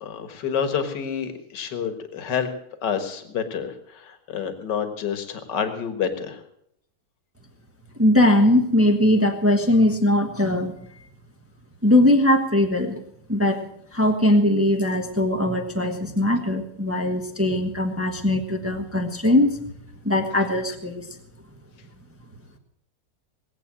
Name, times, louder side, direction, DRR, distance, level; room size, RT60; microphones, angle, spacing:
voice 1, 0.0-2.5 2.8-6.4, left 7 dB, 55° left, 8 dB, 2.0 m, -28 dB
voice 2, 8.0-10.7 11.8-13.0 13.3-13.6 13.9-19.6 20.0-21.1, left 1 dB, 10° right, 4 dB, 0.9 m, -20 dB
19.5 x 8.3 x 7.5 m, 0.72 s
omnidirectional pair, 2.4 m